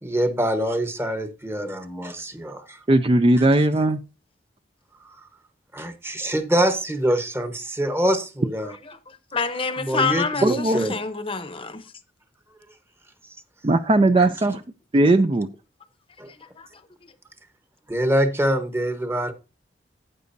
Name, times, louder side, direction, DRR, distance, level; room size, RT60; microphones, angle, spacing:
voice 1, 0.0-2.8 5.7-8.7 9.8-10.9 14.2-14.3 16.2-16.3 17.9-19.3, equal, 15° right, 1.0 m, -24 dB
voice 2, 2.9-4.0 10.4-10.9 13.6-14.6 14.9-15.5, right 2 dB, 30° right, 0.4 m, -18 dB
voice 3, 9.1-11.8 16.6-16.7 17.0-17.1, left 5 dB, 30° left, 0.8 m, -27 dB
12.0 x 9.3 x 2.6 m
head